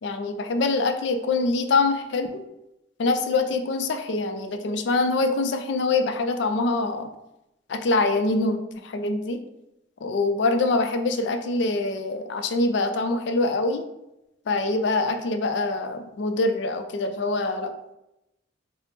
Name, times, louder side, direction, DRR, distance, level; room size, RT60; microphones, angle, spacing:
voice 1, 0.0-2.4 3.0-7.1 7.7-9.4 10.0-13.8 14.5-17.7, left 3 dB, 70° left, 6 dB, 0.4 m, -24 dB
4.0 x 2.0 x 3.4 m, 0.90 s
head